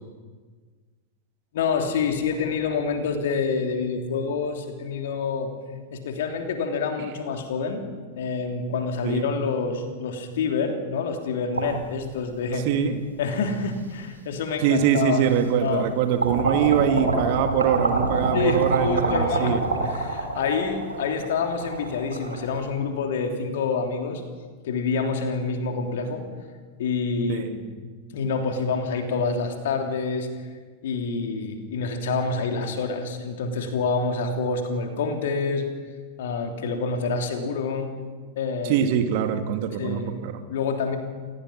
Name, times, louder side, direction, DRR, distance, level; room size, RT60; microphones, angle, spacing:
voice 1, 1.5-5.5 5.9-7.9 8.2-12.7 13.2-15.2 15.6-15.9 18.3-24.2 24.6-26.2 26.8-27.6 28.1-30.3 30.8-35.6 36.2-37.9 38.4-38.8 39.8-40.1 40.5-41.0, left 4 dB, 60° left, 4 dB, 3.1 m, -27 dB
sound 1, 11.5-12.7 13.5-13.6 14.8-14.9 15.3-15.9 16.2-22.7, right 2 dB, 80° right, 3.5 m, -27 dB
voice 2, 12.6-13.0 14.6-19.6 27.3-27.5 38.6-40.4, right 9 dB, 50° right, 7 dB, 2.2 m, -23 dB
29.0 x 17.0 x 5.9 m, 1.5 s
figure-of-eight pair, 90°, 0 cm